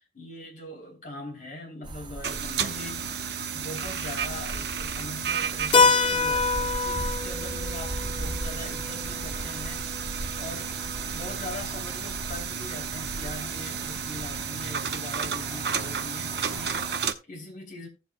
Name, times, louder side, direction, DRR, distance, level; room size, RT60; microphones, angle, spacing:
voice 1, 0.1-9.9 10.4-17.9, left 1 dB, 45° left, 3.3 m, -41 dB
sound 1, 1.8-17.1, right 2 dB, 25° right, 0.8 m, -39 dB
sound 2, 2.2-17.1, right 7 dB, 65° right, 0.9 m, -33 dB
Keyboard (musical), 5.7-10.2, left 4 dB, 30° left, 0.9 m, -26 dB
16.0 x 7.3 x 2.2 m
head